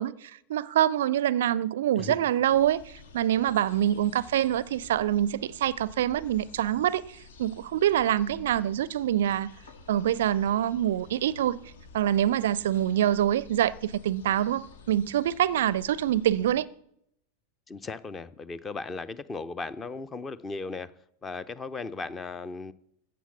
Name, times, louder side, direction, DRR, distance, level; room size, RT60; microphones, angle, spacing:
voice 1, 0.0-9.5 9.9-11.6 11.9-16.7, right 11 dB, 60° right, 0.4 m, -25 dB
sound 1, 2.5-16.6, left 4 dB, 60° left, 1.4 m, -51 dB
voice 2, 17.7-20.9 21.2-22.7, left 4 dB, 20° left, 0.6 m, -36 dB
14.5 x 7.8 x 7.0 m
figure-of-eight pair, 90°, 0 cm